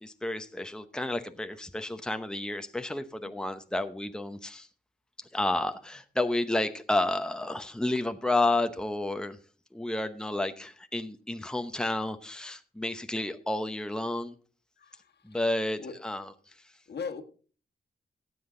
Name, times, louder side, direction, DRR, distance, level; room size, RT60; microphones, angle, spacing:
voice 1, 0.0-4.7 5.2-9.4 9.7-14.3 15.2-16.3, left 2 dB, 5° left, 0.8 m, -31 dB
voice 2, 14.8-15.1 15.8-15.9 16.9-17.2, left 5 dB, 75° left, 1.6 m, -38 dB
15.0 x 8.0 x 3.8 m
cardioid pair, 85°, 17 cm